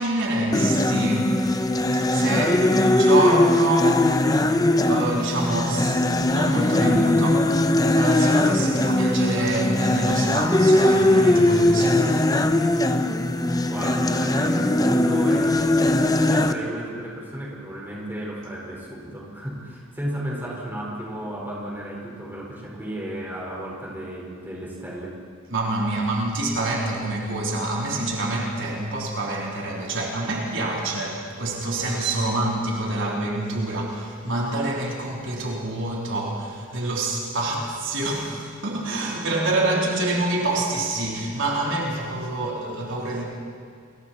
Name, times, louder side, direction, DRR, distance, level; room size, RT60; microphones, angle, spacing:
voice 1, 0.0-1.4 1.9-4.1 4.8-12.3 25.5-43.2, right 2 dB, 60° right, -3 dB, 3.7 m, -27 dB
sound 1, 0.5-16.5, left 1 dB, 15° left, 0.7 m, -20 dB
voice 2, 13.7-25.2 25.9-26.0, right 1 dB, 10° right, -4 dB, 4.7 m, -33 dB
29.5 x 23.0 x 4.4 m, 2.1 s
head